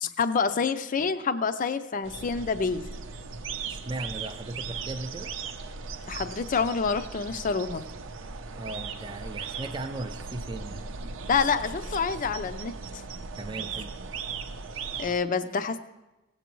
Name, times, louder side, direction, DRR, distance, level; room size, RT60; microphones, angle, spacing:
voice 1, 0.0-2.9 6.1-7.8 11.3-12.7 15.0-15.8, left 5 dB, 45° left, 11 dB, 0.4 m, -27 dB
sound 1, 2.0-15.2, right 5 dB, 75° right, 0.5 m, -38 dB
voice 2, 3.7-5.3 8.6-10.8 13.3-13.9, right 2 dB, 25° right, 6 dB, 0.4 m, -37 dB
16.5 x 8.1 x 3.0 m, 1.0 s
head